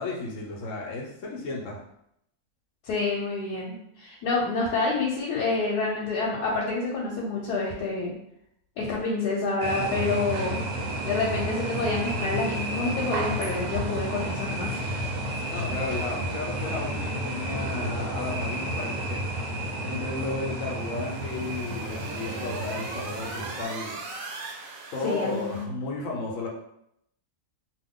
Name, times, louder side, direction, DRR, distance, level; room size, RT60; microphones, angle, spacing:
voice 1, 0.0-1.8 15.4-19.2 19.8-24.0 24.9-26.5, left 3 dB, 60° left, -1 dB, 1.0 m, -33 dB
voice 2, 2.8-8.1 8.8-10.6 11.0-14.7 25.0-25.7, left 3 dB, 85° left, -4 dB, 1.2 m, -28 dB
sound 1, 9.6-23.6, right 1 dB, 90° right, 1.1 m, -31 dB
sound 2, 20.6-25.6, right 3 dB, 70° right, 0.9 m, -39 dB
2.8 x 2.3 x 3.6 m, 0.76 s
omnidirectional pair, 1.6 m